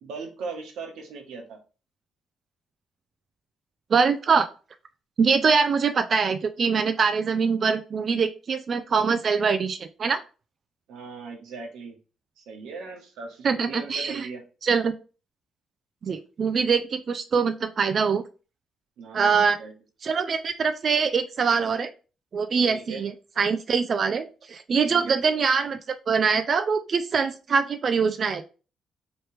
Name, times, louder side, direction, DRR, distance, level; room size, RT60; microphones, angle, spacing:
voice 1, 0.0-1.6 10.9-12.0 12.4-14.4 19.0-19.7 22.7-23.0 24.9-25.2, right 4 dB, 85° right, 2 dB, 1.1 m, -38 dB
voice 2, 3.9-4.5 5.2-10.2 13.4-14.3 14.6-14.9 16.0-18.2 19.1-19.6 20.0-21.9 22.3-28.4, right 5 dB, 50° right, 8 dB, 0.3 m, -23 dB
3.1 x 2.9 x 3.2 m, 0.34 s
cardioid pair, 90°, 0 cm